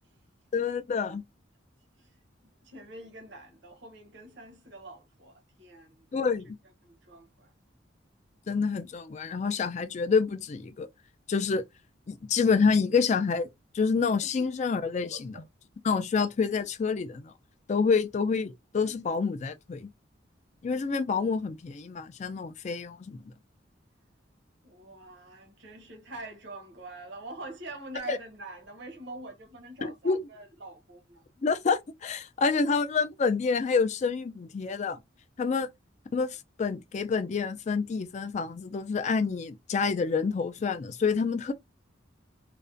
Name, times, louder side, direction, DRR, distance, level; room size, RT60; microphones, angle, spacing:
voice 1, 0.5-1.2 6.1-6.5 8.5-10.9 11.3-11.6 12.1-13.5 13.7-15.4 15.8-17.3 17.7-19.9 20.6-23.2 28.1-28.2 29.8-30.2 31.4-35.0 35.4-35.7 36.1-41.5, left 5 dB, 35° left, 0.3 m, -28 dB
voice 2, 2.6-6.1 6.8-7.5 14.8-15.5 18.8-18.9 24.6-31.2, right 2 dB, 65° right, 0.7 m, -45 dB
2.4 x 2.1 x 2.5 m
head